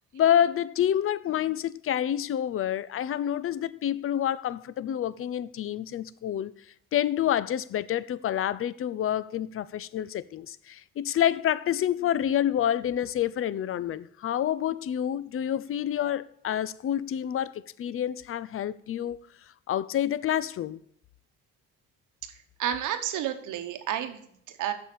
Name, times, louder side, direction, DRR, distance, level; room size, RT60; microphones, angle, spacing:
voice 1, 0.1-6.5 6.9-19.2 19.7-20.8, left 10 dB, 45° left, 0.5 m, -28 dB
voice 2, 22.2-24.7, right 10 dB, 85° right, 1.0 m, -31 dB
7.1 x 5.7 x 6.6 m
cardioid pair, 90°, 30 cm